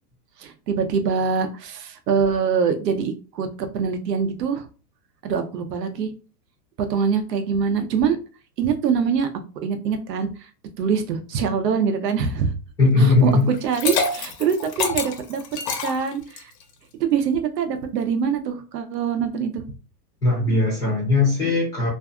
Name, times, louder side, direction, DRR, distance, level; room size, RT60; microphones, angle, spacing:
voice 1, 0.4-4.7 5.2-6.1 6.8-8.2 8.6-9.3 9.6-10.3 10.8-12.5 13.0-15.4 15.8-16.5 17.0-19.6, right 6 dB, 90° right, 7 dB, 0.7 m, -24 dB
voice 2, 12.8-13.5 20.2-21.9, left 3 dB, 10° left, -5 dB, 0.5 m, -19 dB
Liquid, 13.5-16.6, left 5 dB, 85° left, 0.9 m, -27 dB
2.6 x 2.3 x 2.3 m, 0.35 s
supercardioid pair, 155°, 48 cm